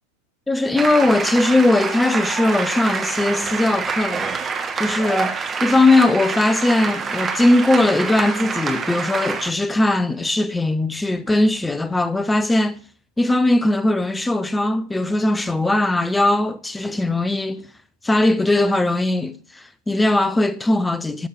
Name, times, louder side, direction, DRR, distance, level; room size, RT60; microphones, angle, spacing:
voice 1, 0.5-4.4 4.8-12.8 13.2-17.7 18.0-21.3, left 2 dB, 10° left, 0.6 m, -19 dB
sound 1, 0.8-9.5, right 5 dB, 20° right, 1.5 m, -26 dB
13.0 x 6.4 x 7.3 m
figure-of-eight pair, 90°, 0 cm